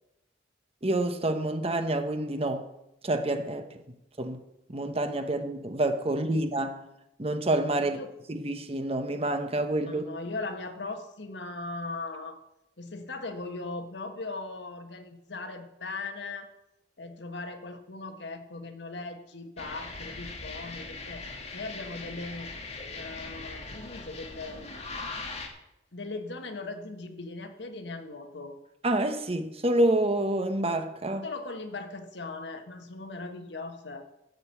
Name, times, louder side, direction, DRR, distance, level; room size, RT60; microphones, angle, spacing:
voice 1, 0.8-2.7 3.0-3.6 4.2-4.4 4.7-6.8 7.2-8.0 8.3-10.0 28.8-31.3, right 1 dB, 35° right, 1.0 m, -28 dB
voice 2, 9.8-12.4 12.8-16.5 17.0-21.2 21.5-22.5 22.9-24.7 25.9-28.6 31.2-34.1, left 3 dB, 75° left, 1.3 m, -39 dB
sound 1, 19.6-25.5, left 3 dB, 40° left, 1.6 m, -40 dB
13.0 x 5.4 x 8.2 m
head